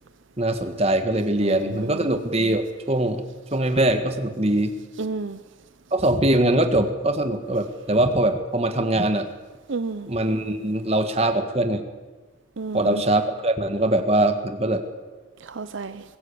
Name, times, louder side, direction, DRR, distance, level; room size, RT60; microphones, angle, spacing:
voice 1, 0.4-3.3 3.5-4.7 5.9-9.3 10.1-11.8 12.7-14.8, right 1 dB, 30° right, 7 dB, 1.7 m, -22 dB
voice 2, 5.0-5.4 9.7-10.1 12.6-13.0 15.5-16.0, right 3 dB, 65° right, 11 dB, 0.7 m, -30 dB
23.0 x 15.0 x 8.7 m, 1.3 s
head